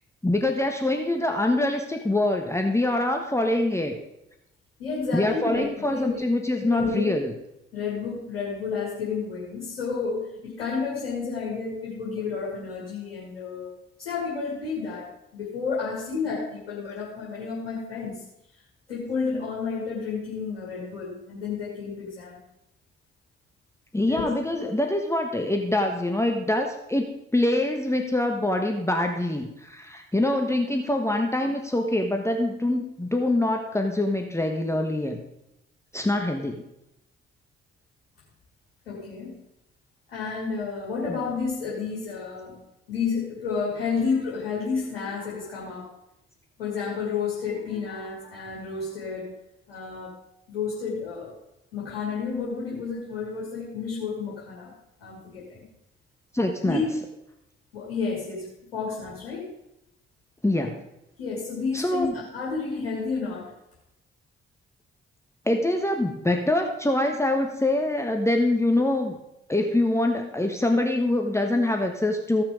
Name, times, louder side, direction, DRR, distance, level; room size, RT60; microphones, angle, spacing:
voice 1, 0.2-4.0 5.1-7.3 23.9-35.2 35.9-36.6 41.1-41.2 56.3-56.8 60.4-60.8 61.7-62.1 65.4-69.2 69.5-72.4, left 1 dB, 10° left, 3 dB, 1.3 m, -24 dB
voice 2, 4.8-6.2 6.5-7.2 7.7-13.7 14.0-15.1 15.3-18.2 18.9-22.4 24.1-24.5 38.9-39.4 40.1-42.6 42.9-45.9 46.6-49.3 49.7-50.1 50.5-51.3 51.7-54.7 55.0-55.7 56.6-56.9 57.7-59.5 61.2-63.5, left 5 dB, 85° left, -4 dB, 2.1 m, -31 dB
15.5 x 6.0 x 5.0 m, 0.87 s
hypercardioid pair, 40°, 29 cm